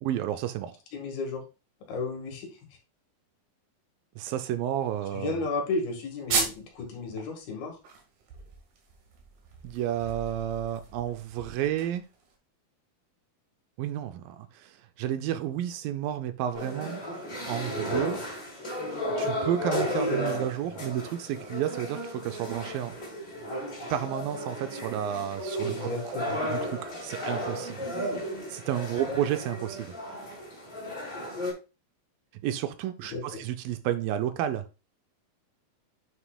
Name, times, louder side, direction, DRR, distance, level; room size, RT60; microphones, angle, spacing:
voice 1, 0.0-0.8 4.2-5.4 9.6-12.0 13.8-17.0 17.5-18.2 19.2-22.9 23.9-25.9 26.4-27.9 28.5-29.9 32.3-34.7, right 11 dB, 80° right, 2.2 m, -31 dB
voice 2, 0.9-1.4 1.9-2.5 5.1-7.8 25.6-26.4 29.1-29.2 33.1-33.4, left 3 dB, 80° left, 3.6 m, -33 dB
sound 1, 6.3-6.8 7.2-7.3 7.7-12.3, right 5 dB, 65° right, 3.1 m, -35 dB
sound 2, 16.5-31.5, equal, 20° left, 4.1 m, -34 dB
9.2 x 6.4 x 2.2 m
omnidirectional pair, 4.3 m